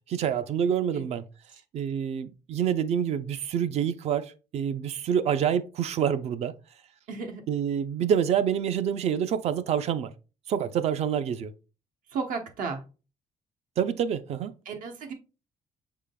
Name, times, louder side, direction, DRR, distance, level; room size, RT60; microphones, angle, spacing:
voice 1, 0.1-1.2 1.7-6.5 7.5-10.1 10.5-11.5 13.8-14.5, right 8 dB, 50° right, 0.4 m, -27 dB
voice 2, 7.1-7.4 12.1-12.8 14.6-15.1, right 5 dB, 80° right, 1.0 m, -33 dB
6.5 x 3.7 x 2.2 m
cardioid pair, 170°, 14 cm